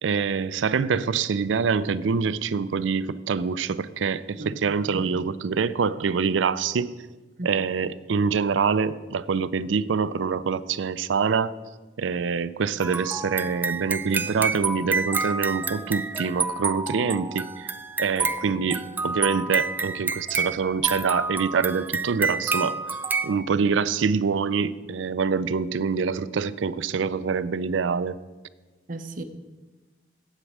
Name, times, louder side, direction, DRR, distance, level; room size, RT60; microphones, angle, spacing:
voice 1, 0.0-6.9 7.4-11.5 12.0-17.7 18.0-22.8 23.2-28.2, right 5 dB, 85° right, 16 dB, 0.4 m, -25 dB
sound 1, 12.8-23.4, right 4 dB, 10° right, 0.3 m, -29 dB
voice 2, 28.9-29.2, right 2 dB, 45° right, 8 dB, 0.8 m, -35 dB
8.2 x 8.1 x 7.2 m, 1.2 s
head